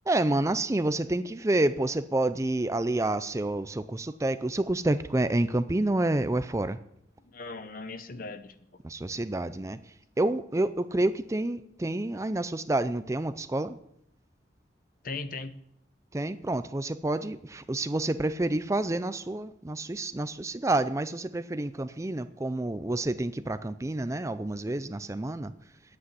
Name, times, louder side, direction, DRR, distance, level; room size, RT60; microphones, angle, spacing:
voice 1, 0.1-6.8 8.8-13.8 16.1-25.5, right 2 dB, 15° right, 12 dB, 0.5 m, -28 dB
voice 2, 7.2-8.8 15.0-15.5, left 3 dB, 50° left, 11 dB, 1.0 m, -39 dB
10.5 x 8.5 x 9.6 m, 0.74 s
head